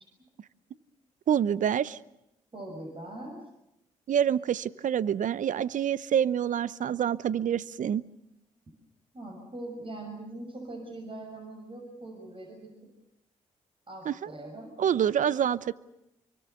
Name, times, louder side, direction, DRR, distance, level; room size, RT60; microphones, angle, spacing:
voice 1, 1.3-2.0 4.1-8.0 14.1-14.3 14.8-15.7, right 9 dB, 60° right, 18 dB, 0.8 m, -27 dB
voice 2, 2.5-3.4 9.1-12.8 13.9-14.8, right 2 dB, 35° right, 3 dB, 6.2 m, -41 dB
25.0 x 24.0 x 6.8 m, 0.84 s
hypercardioid pair, 50°, 15 cm